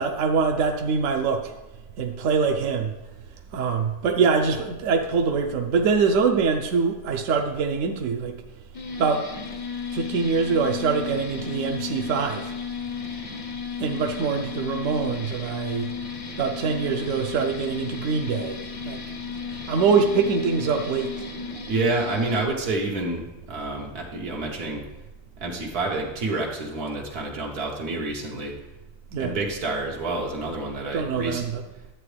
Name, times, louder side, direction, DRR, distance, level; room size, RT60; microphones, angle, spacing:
voice 1, 0.0-1.5 2.0-3.0 3.5-8.4 9.0-9.3 9.9-12.6 13.8-15.9 16.4-19.0 19.5-21.3 29.1-29.3 30.9-31.6, right 5 dB, 65° right, 4 dB, 0.9 m, -24 dB
sound 1, 8.7-22.4, left 6 dB, 35° left, 0.5 m, -34 dB
voice 2, 21.7-23.2 23.5-24.8 25.4-28.5 29.2-31.5, right 2 dB, 85° right, -1 dB, 1.6 m, -28 dB
11.0 x 7.8 x 3.2 m, 1.0 s
omnidirectional pair, 1.6 m